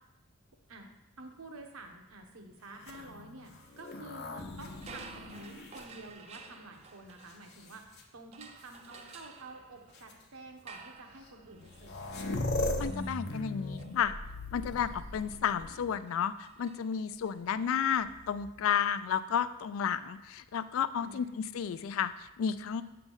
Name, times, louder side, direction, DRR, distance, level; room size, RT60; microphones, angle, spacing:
voice 1, 1.2-12.3 21.0-21.3, right 2 dB, 80° right, 3 dB, 0.9 m, -50 dB
sound 1, 2.8-6.6 7.3-8.0 9.1-9.2 9.9-10.1 11.3-11.4 11.5-16.0 17.9-18.6, left 2 dB, 50° left, 0.7 m, -39 dB
sound 2, 4.7-7.8 8.3-17.3, right 5 dB, 30° right, 0.3 m, -53 dB
voice 2, 12.8-14.2 14.5-22.8, left 8 dB, 70° left, 14 dB, 0.3 m, -32 dB
7.2 x 3.4 x 5.4 m, 0.92 s
head